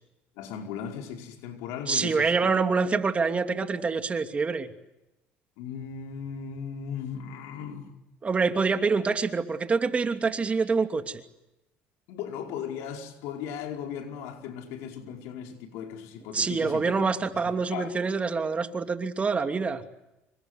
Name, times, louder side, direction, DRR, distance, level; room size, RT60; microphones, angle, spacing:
voice 1, 0.3-2.6 5.6-7.9 12.1-17.1 17.7-18.0, left 8 dB, 80° left, 4.9 m, -37 dB
voice 2, 1.9-4.7 8.2-11.2 16.3-19.8, right 4 dB, 25° right, 2.8 m, -26 dB
28.0 x 25.0 x 8.1 m
supercardioid pair, 100°, 5 cm